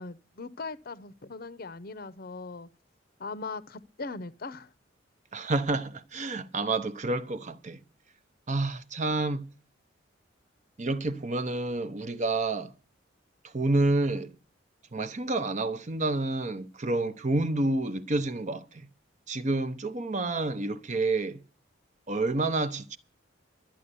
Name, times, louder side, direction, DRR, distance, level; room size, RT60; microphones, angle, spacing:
voice 1, 0.0-2.7 3.2-4.7, left 3 dB, 50° left, 0.7 m, -39 dB
voice 2, 5.3-7.8 8.5-9.5 10.8-12.7 13.4-14.3 14.9-18.9 19.3-21.4 22.1-23.0, right 2 dB, 40° right, 0.8 m, -29 dB
12.5 x 8.8 x 6.8 m
head